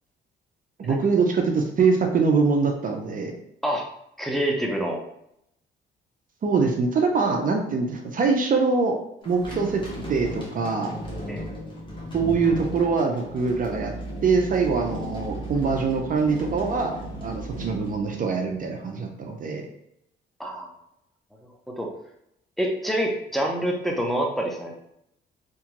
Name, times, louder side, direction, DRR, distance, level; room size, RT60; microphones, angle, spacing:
voice 1, 0.8-3.3 6.4-9.0 9.2-9.8 10.1-11.0 12.1-13.9 14.2-16.9 17.2-19.6, right 4 dB, 45° right, 3 dB, 0.5 m, -23 dB
voice 2, 4.2-5.0 11.3-11.4 20.4-20.7 21.8-21.9 22.6-24.8, right 1 dB, ahead, 0 dB, 0.7 m, -26 dB
sound 1, 9.2-18.7, equal, 25° left, 1.0 m, -35 dB
2.9 x 2.3 x 2.9 m, 0.76 s
cardioid pair, 90°, 20 cm